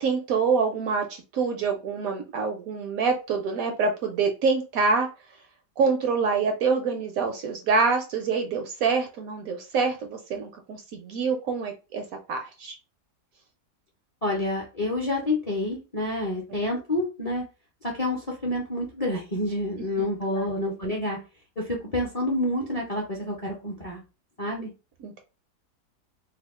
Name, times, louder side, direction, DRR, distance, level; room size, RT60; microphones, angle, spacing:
voice 1, 0.0-5.1 5.8-12.7 20.3-20.5 25.0-25.2, right 4 dB, 70° right, 4 dB, 0.9 m, -26 dB
voice 2, 14.2-17.4 17.8-21.2 21.6-24.0 24.4-24.7, left 1 dB, 40° left, -1 dB, 0.5 m, -28 dB
2.8 x 2.3 x 3.5 m, 0.30 s
omnidirectional pair, 1.8 m